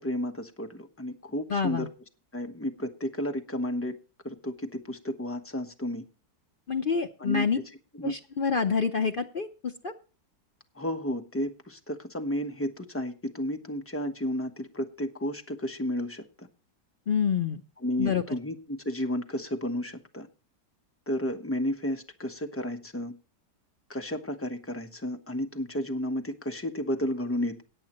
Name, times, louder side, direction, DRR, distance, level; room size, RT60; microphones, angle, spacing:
voice 1, 0.0-1.9 2.3-3.9 4.2-6.0 7.2-7.4 7.9-8.1 10.8-16.5 17.8-20.3 21.1-23.1 23.9-27.6, left 1 dB, 10° left, 5 dB, 0.7 m, -32 dB
voice 2, 1.5-1.9 6.7-7.6 8.0-9.9 17.1-17.6 18.0-18.2, left 6 dB, 65° left, 6 dB, 0.5 m, -27 dB
17.5 x 8.7 x 3.0 m, 0.34 s
omnidirectional pair, 1.9 m